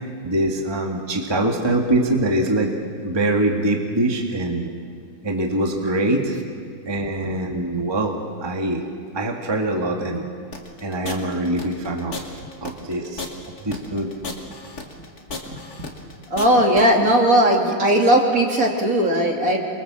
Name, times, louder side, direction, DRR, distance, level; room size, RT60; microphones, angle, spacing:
voice 1, 0.0-2.7 3.0-4.7 5.2-6.4 6.9-8.8 9.1-10.2 10.8-12.3 12.6-13.3 13.6-14.1, right 1 dB, 15° right, 1 dB, 1.8 m, -23 dB
sound 1, 10.5-16.8, left 3 dB, 50° left, 3.0 m, -33 dB
voice 2, 16.3-19.6, right 1 dB, 45° right, 1 dB, 3.1 m, -17 dB
27.5 x 23.5 x 7.6 m, 2.1 s
omnidirectional pair, 2.1 m